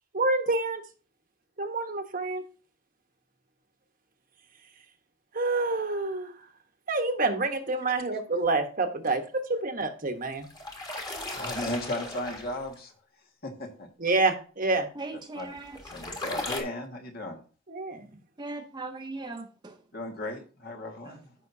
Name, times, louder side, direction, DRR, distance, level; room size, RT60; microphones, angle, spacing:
voice 1, 0.1-0.8 1.6-2.4 5.3-6.3 6.9-9.2 9.5-10.5 14.0-14.9 17.7-18.0, right 3 dB, 45° right, 1.2 m, -27 dB
sound 1, 10.3-12.8 15.4-16.6, left 1 dB, 20° left, 1.8 m, -37 dB
voice 2, 11.3-12.9 13.4-13.9 15.1-15.5 15.9-17.4 19.9-21.3, left 1 dB, 50° left, 1.7 m, -36 dB
voice 3, 15.0-15.8 18.4-19.8 21.1-21.2, right 2 dB, 20° right, 0.7 m, -39 dB
14.5 x 5.9 x 2.7 m
head